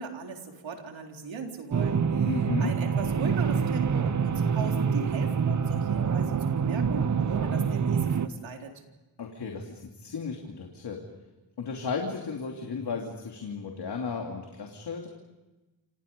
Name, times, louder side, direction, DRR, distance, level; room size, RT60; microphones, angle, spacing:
voice 1, 0.0-2.3 2.6-8.7, right 5 dB, 90° right, 2 dB, 3.9 m, -38 dB
sound 1, 1.7-8.3, right 6 dB, 40° right, 1.0 m, -26 dB
voice 2, 2.2-2.7 9.2-11.0 11.6-15.1, left 5 dB, 60° left, 1 dB, 3.0 m, -34 dB
28.5 x 27.0 x 5.4 m, 1.1 s
wide cardioid pair, 165°, 45 cm